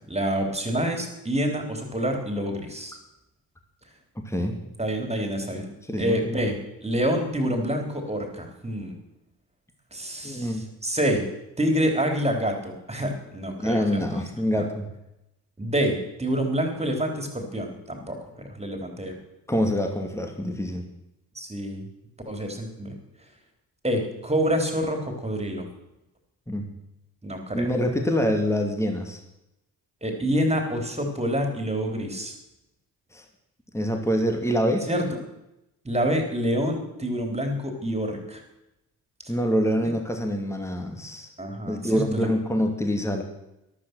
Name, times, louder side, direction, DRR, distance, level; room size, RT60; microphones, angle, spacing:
voice 1, 0.1-3.0 4.8-5.7 6.0-6.6 6.8-8.9 9.9-10.6 10.8-11.2 11.6-14.0 14.6-14.7 15.6-19.2 21.3-21.9 22.3-23.0 23.8-25.7 27.2-27.7 30.0-32.4 34.9-35.2 35.8-38.4 41.4-42.3, equal, 15° right, 4 dB, 3.9 m, -27 dB
voice 2, 4.2-4.6 5.9-6.2 10.2-10.6 13.6-14.9 19.5-20.9 26.5-26.7 27.5-29.2 33.1-33.2 33.7-34.9 39.3-41.3 41.7-43.2, equal, 5° left, 4 dB, 2.5 m, -25 dB
13.0 x 12.5 x 6.3 m, 0.89 s
figure-of-eight pair, 45°, 47 cm